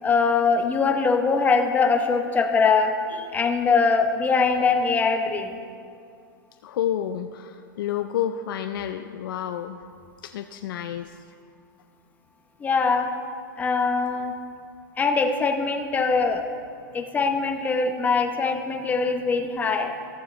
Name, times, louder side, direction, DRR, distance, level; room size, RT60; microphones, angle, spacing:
voice 1, 0.0-5.6 12.6-13.1 13.6-14.3 15.0-16.4 16.9-19.9, left 4 dB, 15° left, 4 dB, 0.8 m, -22 dB
voice 2, 6.6-9.8 10.2-11.1, left 10 dB, 80° left, 7 dB, 0.4 m, -29 dB
14.0 x 6.8 x 3.2 m, 2.3 s
hypercardioid pair, 135°, 11 cm